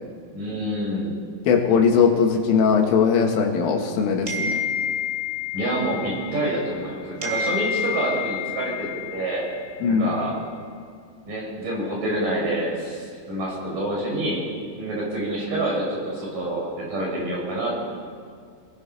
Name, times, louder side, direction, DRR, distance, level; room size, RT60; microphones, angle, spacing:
voice 1, 0.3-1.1 5.5-9.5 9.9-10.4 11.3-14.4 14.7-17.9, right 1 dB, 45° right, -3 dB, 6.8 m, -27 dB
voice 2, 1.5-4.6 9.8-10.1, left 6 dB, 90° left, 2 dB, 4.5 m, -19 dB
sound 1, 4.3-6.9 7.2-9.8, left 6 dB, 20° right, 2.3 m, -29 dB
28.0 x 19.0 x 5.6 m, 2.2 s
omnidirectional pair, 5.6 m